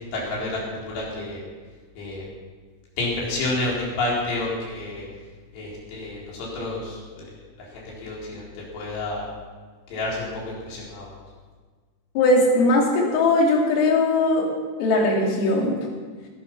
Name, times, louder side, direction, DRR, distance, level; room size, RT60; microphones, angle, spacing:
voice 1, 0.1-1.4 2.0-2.3 3.0-5.0 5.5-7.3 7.7-8.4 8.7-9.3 9.9-11.1, left 2 dB, 55° left, -4 dB, 6.0 m, -29 dB
voice 2, 12.2-14.5 14.8-15.8, left 2 dB, 85° left, -2 dB, 5.3 m, -19 dB
18.0 x 11.0 x 6.0 m, 1.5 s
omnidirectional pair, 5.8 m